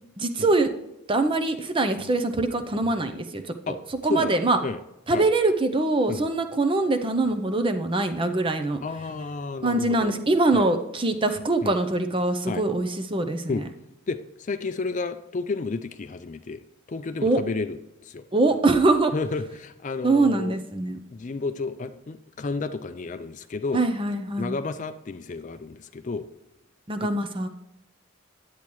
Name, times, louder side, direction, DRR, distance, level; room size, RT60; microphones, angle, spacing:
voice 1, 0.2-0.7 1.1-3.4 3.7-3.8 4.0-4.6 5.1-8.8 9.6-13.6 17.2-17.4 18.3-19.1 20.0-21.0 23.7-24.6 26.9-27.5, right 2 dB, 25° right, 8 dB, 0.6 m, -23 dB
voice 2, 8.8-10.1 10.5-10.7 11.6-11.7 12.5-12.6 13.5-13.6 14.1-16.6 16.9-18.2 19.1-20.6 21.1-23.8 24.4-26.3 27.0-27.1, left 4 dB, 35° left, 10 dB, 0.4 m, -31 dB
10.0 x 8.4 x 3.1 m, 0.88 s
head